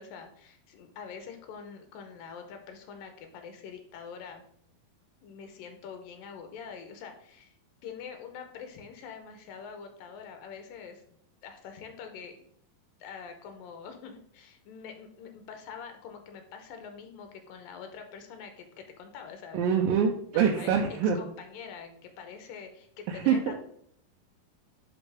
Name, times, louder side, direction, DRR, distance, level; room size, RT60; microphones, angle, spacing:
voice 1, 0.0-4.4 5.2-7.6 7.8-11.0 11.4-12.4 13.0-19.6 20.3-20.7 21.1-23.6, left 6 dB, 75° left, 5 dB, 2.6 m, -45 dB
voice 2, 19.5-21.2 23.1-23.5, right 7 dB, 75° right, 0 dB, 2.3 m, -25 dB
10.5 x 4.2 x 3.5 m, 0.67 s
omnidirectional pair, 4.3 m